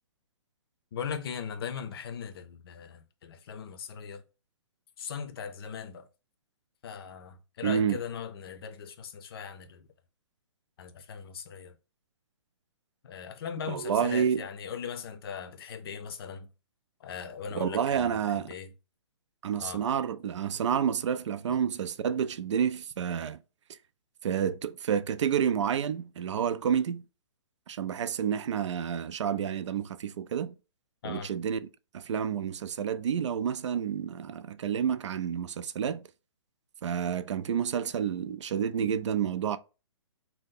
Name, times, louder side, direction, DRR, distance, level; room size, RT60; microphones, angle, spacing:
voice 1, 0.9-4.2 5.0-6.1 6.8-9.9 10.8-11.8 13.0-16.5 17.0-18.7 19.6-19.8 31.0-31.3, left 7 dB, 55° left, 0.5 m, -39 dB
voice 2, 7.6-8.0 13.7-14.4 17.5-18.5 19.4-23.4 24.2-27.0 27.7-30.5 31.0-31.7 31.9-36.0 36.8-39.6, right 8 dB, 75° right, 0.4 m, -29 dB
2.7 x 2.1 x 3.6 m
hypercardioid pair, 155°, 15 cm